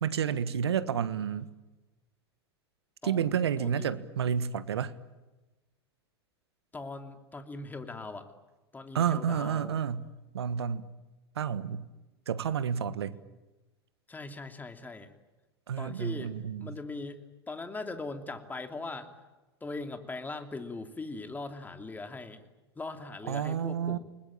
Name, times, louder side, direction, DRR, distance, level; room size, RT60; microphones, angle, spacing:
voice 1, 0.0-1.5 3.0-4.9 8.9-10.1 10.3-10.8 11.3-11.9 12.3-13.2 15.7-16.8 23.3-24.0, right 8 dB, 75° right, 14 dB, 1.5 m, -30 dB
voice 2, 3.0-4.0 6.7-8.3 8.7-9.8 14.1-15.1 15.8-16.3 16.6-19.1 19.6-22.5 22.8-24.0, left 3 dB, 15° left, 6 dB, 2.9 m, -40 dB
29.5 x 20.5 x 9.0 m, 1.1 s
hypercardioid pair, 95°, 14 cm